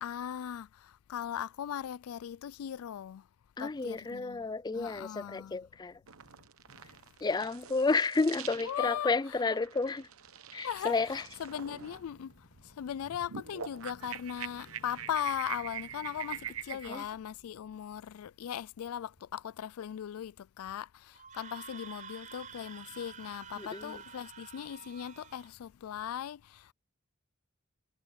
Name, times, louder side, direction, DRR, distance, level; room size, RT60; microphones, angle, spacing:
voice 1, 0.0-3.2 3.6-4.5 4.8-5.6 8.6-9.1 10.6-12.3 12.6-26.7, left 9 dB, 90° left, 0.4 m, -39 dB
voice 2, 3.6-6.0 7.2-10.1 10.5-11.3 16.9-17.0 23.6-24.0, left 3 dB, 20° left, 0.4 m, -31 dB
sound 1, 6.1-17.1, right 9 dB, 80° right, 1.0 m, -45 dB
sound 2, 9.6-19.6, left 1 dB, 65° left, 4.0 m, -61 dB
Screaming, 21.2-25.5, right 6 dB, 35° right, 4.4 m, -49 dB
head